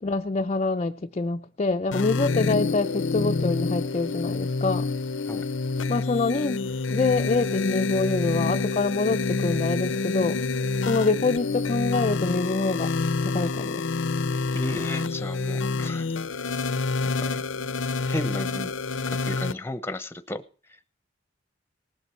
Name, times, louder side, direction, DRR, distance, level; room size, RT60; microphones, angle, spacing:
voice 1, 0.0-4.9 5.9-10.4 10.8-12.9 13.2-13.9, left 3 dB, 35° left, 0.5 m, -26 dB
sound 1, 1.9-19.5, left 4 dB, 85° left, 0.7 m, -27 dB
voice 2, 14.5-16.1 16.4-16.5 17.3-17.4 18.1-18.7 19.2-20.4, left 1 dB, 15° left, 0.9 m, -33 dB
19.0 x 8.2 x 4.4 m
head